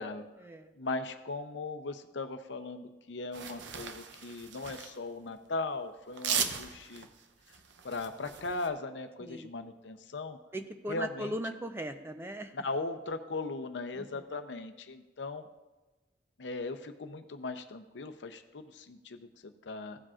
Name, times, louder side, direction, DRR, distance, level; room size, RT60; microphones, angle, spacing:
voice 1, 0.7-7.1 7.8-10.4 10.9-11.4 12.5-15.5 16.4-20.0, left 3 dB, 80° left, 8 dB, 0.6 m, -38 dB
sound 1, 3.3-5.0 6.1-8.7, right 7 dB, 85° right, 0.7 m, -37 dB
voice 2, 10.5-12.5 13.9-14.2, equal, 15° right, 7 dB, 0.5 m, -38 dB
15.5 x 7.5 x 2.5 m, 1.1 s
head